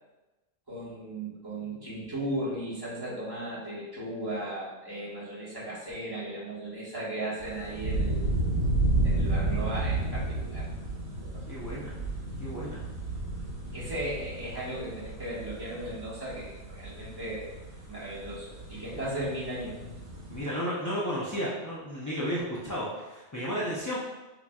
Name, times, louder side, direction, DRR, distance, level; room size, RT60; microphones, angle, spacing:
voice 1, 0.7-8.3 9.0-10.7 11.2-11.8 13.7-17.5 17.9-19.8, right 1 dB, 20° right, -10 dB, 1.5 m, -36 dB
sound 1, 7.4-20.4, right 2 dB, 85° right, 1.6 m, -32 dB
voice 2, 11.5-11.9 12.4-12.8 20.3-24.0, equal, 25° left, -7 dB, 0.4 m, -33 dB
5.9 x 3.0 x 2.3 m, 1.1 s
omnidirectional pair, 1.3 m